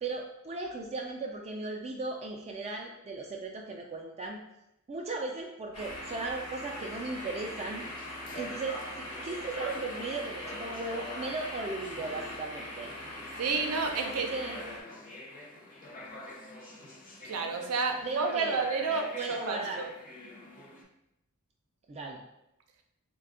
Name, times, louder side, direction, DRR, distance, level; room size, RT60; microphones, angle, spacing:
voice 1, 0.0-4.4 4.9-7.9 8.3-12.9 14.0-14.6 18.0-18.6 18.9-19.9 21.9-22.2, right 3 dB, 30° right, 0 dB, 0.3 m, -37 dB
sound 1, 5.7-14.8, left 1 dB, 85° left, 1.0 m, -41 dB
sound 2, 7.1-20.8, left 1 dB, 40° left, 0.6 m, -46 dB
voice 2, 13.4-14.3 17.2-19.9, right 4 dB, 90° right, 4 dB, 0.5 m, -30 dB
3.3 x 2.2 x 3.6 m, 0.85 s
head